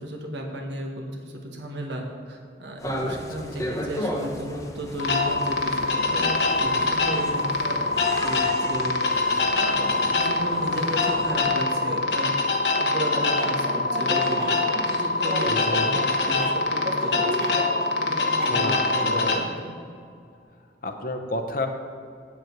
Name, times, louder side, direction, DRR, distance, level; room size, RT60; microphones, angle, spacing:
voice 1, 0.0-7.8 8.2-17.6 17.9-19.7, right 1 dB, 85° right, 0 dB, 1.4 m, -34 dB
sound 1, 2.8-11.5, equal, 20° left, 0.8 m, -35 dB
sound 2, 5.0-19.4, left 3 dB, 75° left, 1.0 m, -24 dB
sound 3, 13.0-19.2, right 1 dB, 55° right, 1.8 m, -34 dB
voice 2, 15.5-16.3 18.5-19.5 20.8-21.7, left 2 dB, 50° left, 5 dB, 0.8 m, -31 dB
8.1 x 7.8 x 4.6 m, 2.3 s
head